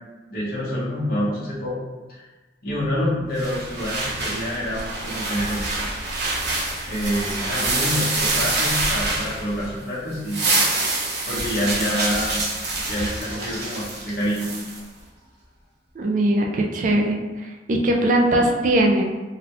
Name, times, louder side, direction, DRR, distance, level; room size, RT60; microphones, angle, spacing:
voice 1, 0.3-1.8 2.1-2.2 2.6-5.8 6.8-10.4 11.3-12.4 12.9-14.5, equal, 55° left, -7 dB, 1.1 m, -27 dB
sound 1, 3.4-9.8 10.1-14.8, right 2 dB, 65° right, 0.8 m, -26 dB
voice 2, 16.0-19.0, right 1 dB, 45° right, 0 dB, 0.4 m, -20 dB
3.8 x 2.3 x 2.9 m, 1.2 s
head